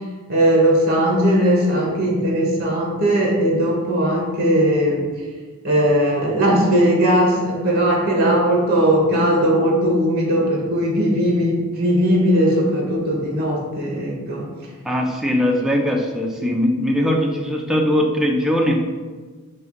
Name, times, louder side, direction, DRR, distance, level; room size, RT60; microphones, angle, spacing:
voice 1, 0.3-5.0 5.6-14.5, equal, 45° right, -2 dB, 0.7 m, -18 dB
voice 2, 14.8-18.8, equal, ahead, 0 dB, 0.3 m, -20 dB
4.2 x 2.1 x 3.6 m, 1.4 s
head